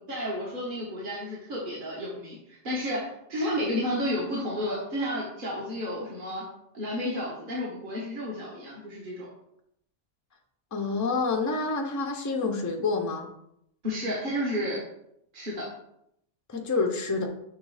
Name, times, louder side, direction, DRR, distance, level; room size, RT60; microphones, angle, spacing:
voice 1, 0.1-6.4 6.7-9.3 13.8-14.8 15.3-15.7, equal, 45° right, -6 dB, 1.5 m, -31 dB
voice 2, 10.7-13.3 16.5-17.3, left 4 dB, 20° left, 2 dB, 0.6 m, -28 dB
6.5 x 3.1 x 4.8 m, 0.76 s
omnidirectional pair, 1.2 m